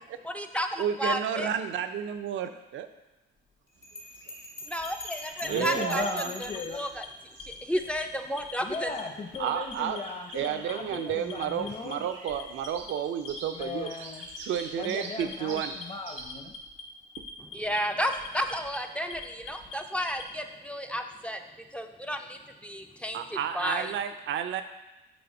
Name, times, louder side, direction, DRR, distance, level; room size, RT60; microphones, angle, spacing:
voice 1, 0.2-1.5 4.7-7.1 7.4-8.9 17.5-21.4 21.7-23.2 23.5-23.9, equal, 5° left, 5 dB, 0.4 m, -32 dB
voice 2, 0.8-2.9 5.5-6.3 9.4-10.0 10.3-13.9 14.5-15.7 23.1-24.6, right 9 dB, 75° right, 9 dB, 0.6 m, -31 dB
Bell, 3.8-6.8, left 1 dB, 50° left, 1.9 m, -42 dB
Birds observatory at Refugio Pullao, 3.8-16.2, right 3 dB, 90° right, 1.2 m, -48 dB
Alarm, 4.8-6.1 6.4-7.1 7.4-8.0 8.4-9.0 9.3-10.0 10.3-11.0 11.3-11.9 12.3-12.9 13.2-13.9 14.2-14.9 15.2-15.8 16.2-16.8 17.1-17.8 18.1-18.8 19.1-20.3, left 6 dB, 75° left, 1.1 m, -43 dB
voice 3, 5.4-6.8 8.6-12.0 13.5-14.3 14.8-16.5, left 4 dB, 30° left, 4 dB, 0.9 m, -37 dB
7.1 x 3.3 x 5.3 m, 1.0 s
cardioid pair, 90°, 20 cm